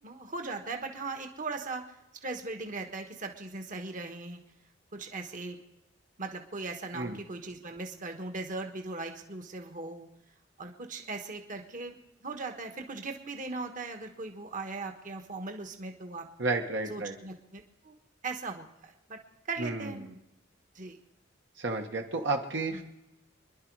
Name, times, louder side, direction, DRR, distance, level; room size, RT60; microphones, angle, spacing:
voice 1, 0.0-1.8 2.2-4.4 4.9-5.6 6.2-10.1 10.6-16.3 16.9-17.9 18.2-19.2 19.4-20.0 20.7-21.0 22.7-22.8, right 3 dB, 45° right, 4 dB, 1.5 m, -39 dB
voice 2, 16.4-17.2 19.6-20.1 21.6-22.8, right 3 dB, 65° right, 2 dB, 1.4 m, -32 dB
26.0 x 11.0 x 4.8 m, 0.92 s
head